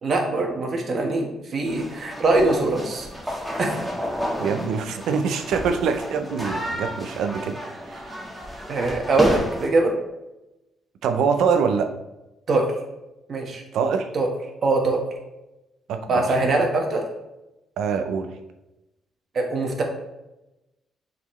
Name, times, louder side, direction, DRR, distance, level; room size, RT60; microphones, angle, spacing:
voice 1, 0.0-3.1 3.6-3.8 4.6-4.7 8.7-9.9 12.5-12.7 13.3-13.6 14.1-14.3 14.6-15.0 16.1-17.0 19.3-19.8, right 2 dB, 50° right, 1 dB, 1.3 m, -22 dB
sound 1, 1.7-9.7, equal, 5° right, 1.5 m, -31 dB
voice 2, 4.4-7.6 7.9-8.2 11.0-12.0 13.7-14.1 15.9-16.5 17.8-18.3, right 6 dB, 80° right, 7 dB, 0.6 m, -24 dB
7.2 x 4.2 x 3.2 m, 0.96 s
cardioid pair, 90°, 0 cm